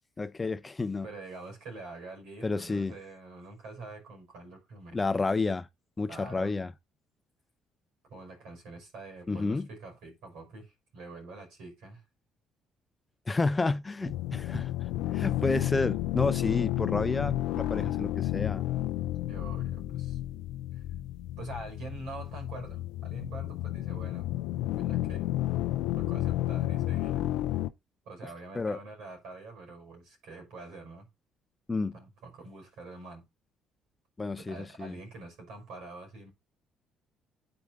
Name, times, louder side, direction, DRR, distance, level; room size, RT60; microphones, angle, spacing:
voice 1, 0.2-1.1 2.4-2.9 4.9-5.7 6.0-6.7 9.3-9.7 13.3-14.7 15.1-18.6 28.5-28.8 31.7-32.0 34.2-35.0, left 3 dB, 25° left, 0.7 m, -30 dB
voice 2, 1.0-5.0 6.1-6.5 8.1-12.0 14.0-14.1 19.3-20.2 20.7-20.8 21.4-24.3 24.8-25.3 25.9-27.3 28.0-31.1 31.9-33.2 34.4-36.3, right 3 dB, 75° right, 5.5 m, -45 dB
sound 1, 14.0-27.7, left 14 dB, 80° left, 0.5 m, -31 dB
8.9 x 4.9 x 4.0 m
hypercardioid pair, 60°, 0 cm